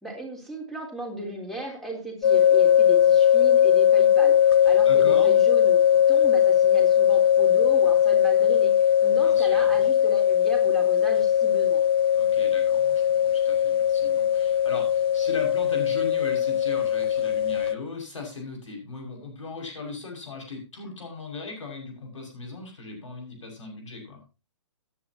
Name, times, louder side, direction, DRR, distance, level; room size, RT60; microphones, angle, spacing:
voice 1, 0.0-5.8 6.1-11.8, right 1 dB, ahead, 1 dB, 3.7 m, -35 dB
sound 1, 2.2-17.7, left 9 dB, 50° left, 1.0 m, -20 dB
voice 2, 4.8-5.3 9.2-9.8 12.1-24.2, left 4 dB, 80° left, 2 dB, 6.3 m, -38 dB
17.5 x 10.5 x 2.9 m, 0.29 s
hypercardioid pair, 145°, 16 cm